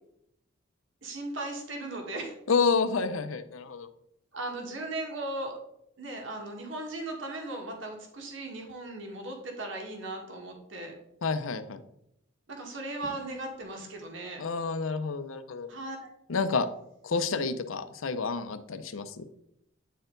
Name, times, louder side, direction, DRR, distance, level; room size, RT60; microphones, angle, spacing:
voice 1, 1.0-2.4 4.3-5.5 6.0-10.9 12.6-14.4 15.7-16.1, right 2 dB, 70° right, 1 dB, 1.7 m, -37 dB
voice 2, 2.5-3.9 11.2-11.8 14.4-15.7 16.3-16.7 17.0-19.3, left 4 dB, 80° left, 10 dB, 0.6 m, -29 dB
9.1 x 4.4 x 3.9 m, 0.77 s
head